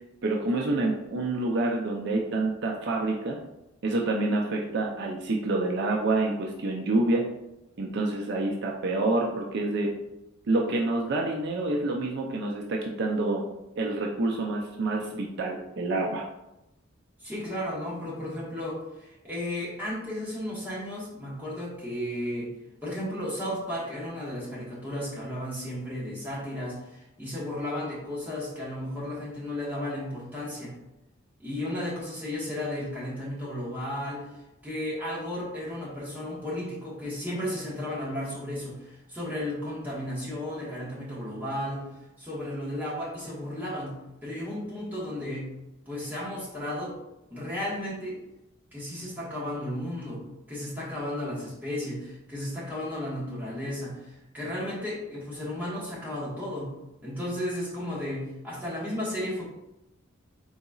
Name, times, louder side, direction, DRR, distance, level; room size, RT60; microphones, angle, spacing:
voice 1, 0.2-3.4 3.8-7.2 7.8-9.9 10.5-13.5 13.8-16.2, right 2 dB, 55° right, 0 dB, 0.4 m, -27 dB
voice 2, 17.2-22.5 22.8-30.7 31.4-34.3 34.6-41.9 42.2-43.9 44.2-45.5 45.9-47.0 47.3-48.2 48.7-50.2 50.5-56.7 57.0-59.5, left 1 dB, 10° right, -7 dB, 1.3 m, -34 dB
4.1 x 3.8 x 2.3 m, 0.92 s
head